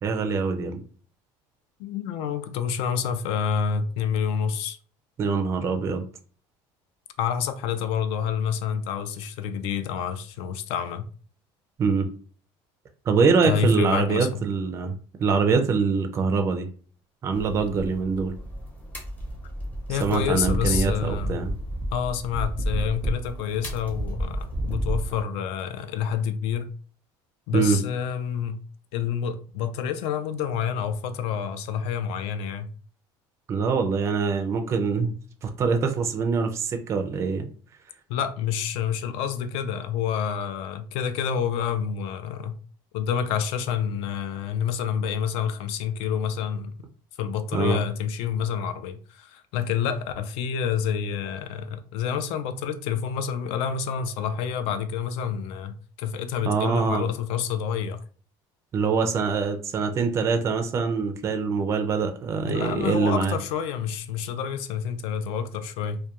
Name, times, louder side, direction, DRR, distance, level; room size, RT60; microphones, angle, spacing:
voice 1, 0.0-0.8 5.2-6.1 11.8-12.1 13.1-14.9 15.2-16.7 17.2-18.3 20.0-21.5 27.5-27.8 33.5-35.1 35.4-37.5 47.5-47.8 56.5-57.1 58.7-63.4, right 5 dB, 25° right, 0.3 m, -24 dB
voice 2, 1.8-4.8 7.2-11.1 13.4-14.4 19.9-21.4 21.9-26.7 27.5-28.6 28.9-32.7 38.1-42.6 42.9-46.7 47.2-58.0 62.5-66.0, left 7 dB, 70° left, 0.4 m, -28 dB
sound 1, 17.3-25.2, right 1 dB, 15° left, 0.6 m, -31 dB
2.3 x 2.1 x 2.8 m
cardioid pair, 150°, 11 cm